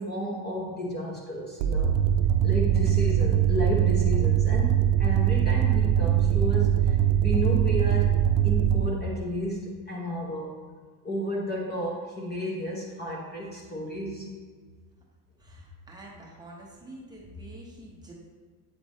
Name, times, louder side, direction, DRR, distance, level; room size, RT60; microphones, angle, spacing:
voice 1, 0.0-2.0 2.4-10.5 11.0-14.3, equal, 20° left, -2 dB, 0.7 m, -32 dB
sound 1, 1.6-8.9, right 10 dB, 65° right, 0.6 m, -22 dB
voice 2, 15.4-18.1, right 1 dB, 10° right, -4 dB, 0.9 m, -46 dB
8.3 x 3.3 x 4.1 m, 1.6 s
supercardioid pair, 140°, 49 cm